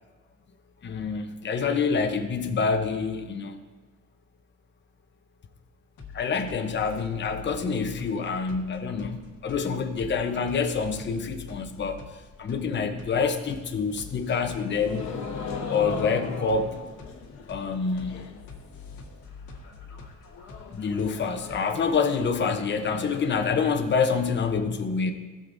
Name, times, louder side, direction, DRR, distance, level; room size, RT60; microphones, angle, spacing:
voice 1, 0.8-3.6 6.1-12.0 12.4-15.0 15.7-16.7 17.5-18.2 20.7-25.1, left 5 dB, 35° left, 6 dB, 0.9 m, -27 dB
sound 1, 6.0-21.9, left 4 dB, 85° left, 1.6 m, -46 dB
sound 2, 13.4-18.5 18.7-19.3 19.6-19.7 19.9-20.0 20.3-24.3, left 5 dB, 70° left, 1.1 m, -39 dB
15.5 x 6.6 x 2.6 m, 1.3 s
cardioid pair, 90°, 30 cm